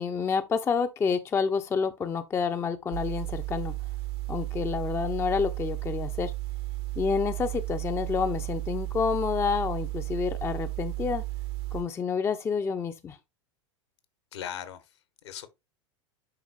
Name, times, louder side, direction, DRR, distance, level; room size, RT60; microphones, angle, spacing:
voice 1, 0.0-3.8 4.3-6.3 7.0-11.2 11.7-13.2, left 6 dB, 15° left, 0.5 m, -28 dB
sound 1, 2.9-11.8, right 21 dB, 55° right, 0.7 m, -34 dB
voice 2, 14.3-15.5, left 9 dB, 65° left, 1.1 m, -39 dB
10.5 x 3.9 x 2.4 m
figure-of-eight pair, 85°, 16 cm